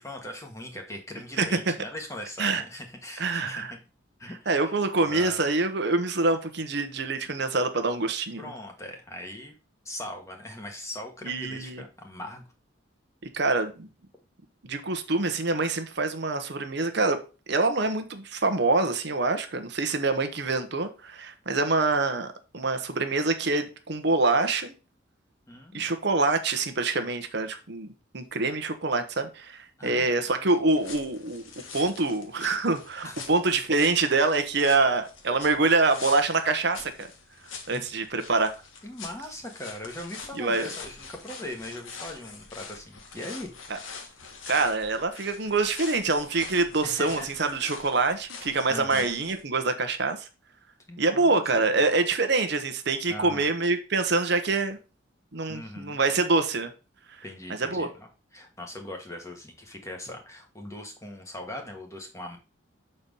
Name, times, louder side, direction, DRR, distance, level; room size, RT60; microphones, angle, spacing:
voice 1, 0.0-3.6 4.2-5.4 8.4-9.6 9.8-12.5 25.5-25.9 29.8-30.4 33.0-33.3 37.7-37.8 38.8-43.5 43.9-44.1 46.8-47.3 48.7-49.1 50.9-51.4 53.1-53.5 55.5-56.0 57.2-58.1 58.3-62.4, left 1 dB, 15° left, 1.4 m, -40 dB
voice 2, 1.4-1.7 2.4-2.6 3.2-3.7 4.5-8.5 11.2-11.8 13.3-13.9 14.6-17.2 17.5-24.7 25.7-27.9 28.1-31.4 31.7-37.1 37.7-38.5 40.3-40.7 43.7-43.8 44.5-50.3 51.0-54.8 55.3-56.7 57.1-57.2 57.6-57.9, right 3 dB, 55° right, 0.9 m, -25 dB
sound 1, 30.7-49.4, left 5 dB, 80° left, 1.5 m, -44 dB
6.8 x 4.3 x 5.3 m
head